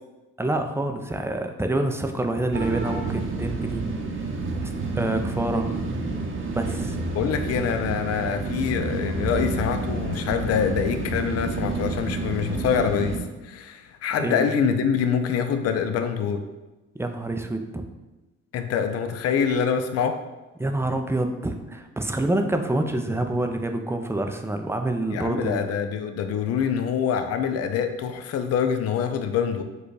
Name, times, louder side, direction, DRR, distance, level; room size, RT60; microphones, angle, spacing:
voice 1, 0.4-3.8 4.6-4.7 5.0-5.7 6.5-7.0 14.2-14.4 16.9-17.8 20.6-25.6, right 2 dB, 10° right, 5 dB, 0.4 m, -27 dB
sound 1, 2.5-13.2, right 3 dB, 40° right, 0.7 m, -29 dB
voice 2, 7.1-13.2 13.4-16.4 18.5-20.2 25.1-29.6, left 7 dB, 55° left, 7 dB, 0.4 m, -25 dB
4.7 x 2.3 x 4.7 m, 1.1 s
cardioid pair, 90°, 30 cm